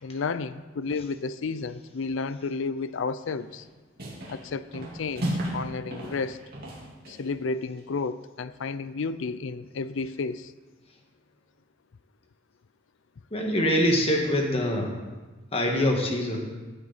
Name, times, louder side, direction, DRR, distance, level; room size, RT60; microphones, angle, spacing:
voice 1, 0.0-3.7 4.3-6.4 7.1-10.5, left 4 dB, 70° left, 14 dB, 0.4 m, -32 dB
sound 1, 3.4-3.7 4.0-4.4 4.7-5.6 5.9-7.3, right 1 dB, 50° right, 3.2 m, -34 dB
voice 2, 13.3-14.9 15.5-16.4, left 1 dB, 30° left, 1 dB, 1.6 m, -24 dB
16.5 x 7.8 x 4.1 m, 1.3 s
head